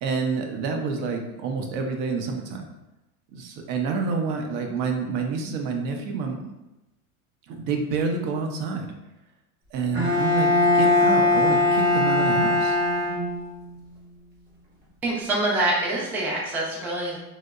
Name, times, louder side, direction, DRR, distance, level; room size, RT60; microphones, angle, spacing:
voice 1, 0.0-2.7 3.3-6.4 7.5-8.9 9.7-12.8, right 4 dB, 55° right, 3 dB, 0.5 m, -28 dB
Bowed string instrument, 9.9-13.7, left 2 dB, 25° right, 0.9 m, -20 dB
voice 2, 15.0-17.2, right 2 dB, 5° right, -5 dB, 0.3 m, -25 dB
2.8 x 2.1 x 2.3 m, 0.96 s
supercardioid pair, 100°, 43 cm